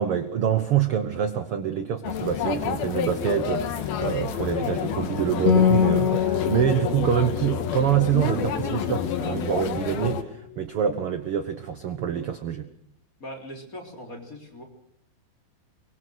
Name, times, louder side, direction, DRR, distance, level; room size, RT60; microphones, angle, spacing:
voice 1, 0.0-12.7, right 9 dB, 65° right, 9 dB, 1.4 m, -26 dB
sound 1, 2.0-10.2, left 8 dB, 85° left, 3.5 m, -29 dB
Acoustic guitar, 5.5-9.2, left 8 dB, 50° left, 3.5 m, -24 dB
voice 2, 13.2-14.6, equal, 25° left, 1 dB, 4.0 m, -40 dB
24.0 x 23.5 x 6.4 m, 0.69 s
omnidirectional pair, 4.2 m